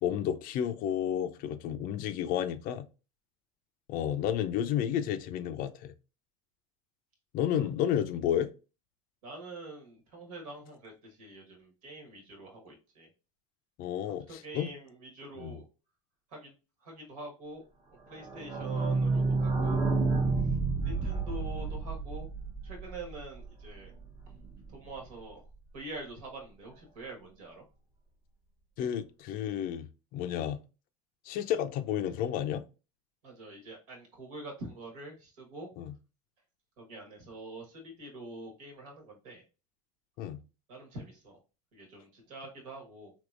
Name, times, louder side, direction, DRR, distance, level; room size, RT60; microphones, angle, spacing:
voice 1, 0.0-2.9 3.9-5.9 7.3-8.5 13.8-14.7 15.4-15.6 28.8-29.9 30.1-30.6 31.3-32.6 35.8-35.9 40.2-40.4, left 10 dB, 55° left, 0.5 m, -31 dB
voice 2, 9.2-13.1 14.1-15.7 16.3-16.5 16.8-17.6 18.1-19.8 20.8-22.3 22.6-23.9 24.7-25.5 25.7-27.6 33.2-35.7 36.8-39.4 40.7-41.4 41.7-43.1, right 2 dB, 75° right, 1.5 m, -45 dB
sound 1, 18.1-23.7 24.0-24.1 24.3-24.4 24.6-24.7, right 3 dB, 25° right, 0.7 m, -30 dB
3.5 x 2.9 x 2.4 m
hypercardioid pair, 90°, 18 cm